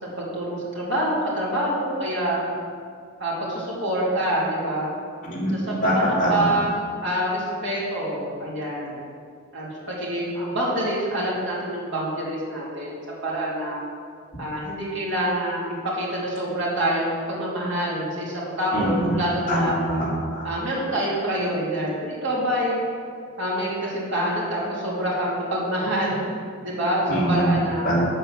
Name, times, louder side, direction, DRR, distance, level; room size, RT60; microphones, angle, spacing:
voice 1, 0.0-2.4 3.2-4.9 5.5-9.0 9.5-13.8 14.4-19.7 20.4-22.8 23.4-26.3 26.6-27.9, right 1 dB, 55° right, -6 dB, 2.8 m, -26 dB
voice 2, 5.2-5.5 5.8-6.5 18.7-19.2 19.5-20.5 27.1-27.6 27.8-28.1, equal, 40° left, -7 dB, 2.9 m, -23 dB
8.0 x 7.8 x 6.5 m, 2.2 s
head